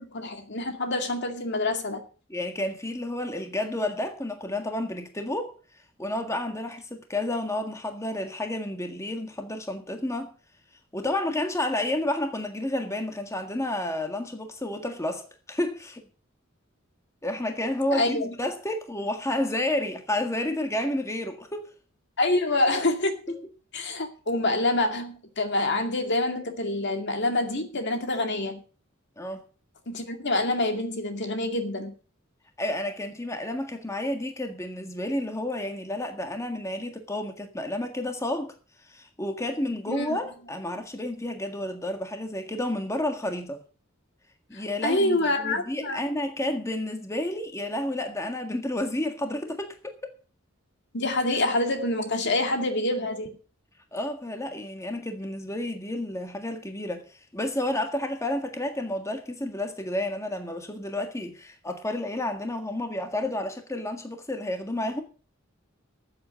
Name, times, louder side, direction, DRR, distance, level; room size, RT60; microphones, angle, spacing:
voice 1, 0.0-2.0 17.9-18.3 22.2-23.2 23.7-28.6 29.9-32.0 39.9-40.1 44.5-46.0 50.9-53.4, left 2 dB, 60° left, 2.3 m, -26 dB
voice 2, 2.3-5.5 6.0-10.3 10.9-16.0 17.2-21.7 29.2-29.4 32.6-38.5 38.9-43.6 44.5-50.1 53.9-65.0, left 1 dB, 15° left, 1.7 m, -30 dB
14.0 x 7.9 x 6.4 m
head